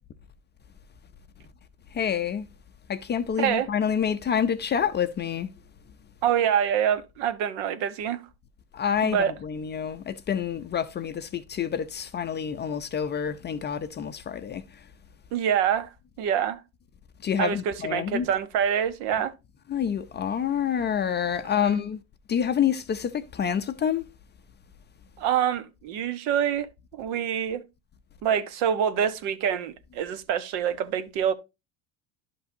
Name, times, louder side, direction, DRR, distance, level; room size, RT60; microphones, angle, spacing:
voice 1, 1.9-2.5 2.9-5.5 8.7-14.9 17.2-18.3 19.1-19.2 19.7-22.0 22.3-24.0, left 8 dB, 25° left, 0.4 m, -28 dB
voice 2, 6.2-8.2 9.0-9.3 15.3-15.9 16.2-16.6 17.4-19.3 21.6-21.8 25.2-26.7 26.9-27.6 28.2-31.3, right 9 dB, 75° right, 1.1 m, -26 dB
11.5 x 5.7 x 2.7 m
cardioid pair, 125°, 43 cm